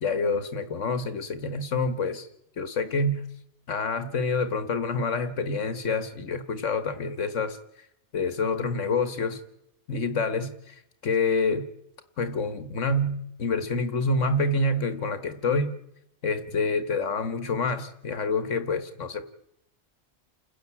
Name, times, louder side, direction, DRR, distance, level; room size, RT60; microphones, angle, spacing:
voice 1, 0.0-2.3 2.6-3.2 3.7-7.6 8.1-9.4 9.9-11.7 12.2-15.8 16.2-19.2, left 3 dB, 85° left, 11 dB, 1.7 m, -27 dB
30.0 x 10.5 x 8.4 m, 0.81 s
omnidirectional pair, 1.2 m